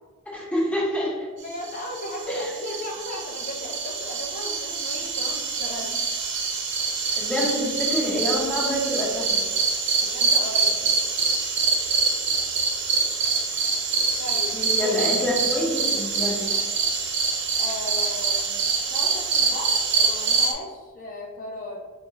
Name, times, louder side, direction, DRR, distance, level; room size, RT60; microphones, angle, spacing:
voice 1, 0.3-1.3 2.3-2.5 7.2-9.4 14.5-16.4, left 1 dB, 5° left, -4 dB, 0.7 m, -26 dB
voice 2, 1.4-6.1 10.0-10.9 14.2-15.0 16.5-16.6 17.6-21.9, left 1 dB, 40° left, 0 dB, 0.5 m, -36 dB
sound 1, 1.6-20.5, right 4 dB, 55° right, 0.5 m, -25 dB
4.9 x 2.3 x 3.1 m, 1.4 s
head